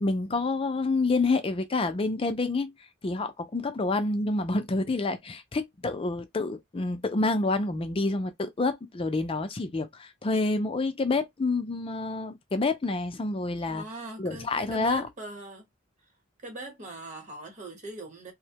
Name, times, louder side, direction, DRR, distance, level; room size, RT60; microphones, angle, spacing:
voice 1, 0.0-2.7 3.0-13.8 14.2-15.1, left 3 dB, 25° left, 0.4 m, -28 dB
voice 2, 13.7-15.7 16.4-18.3, right 2 dB, 35° right, 1.0 m, -41 dB
2.7 x 2.1 x 2.8 m
head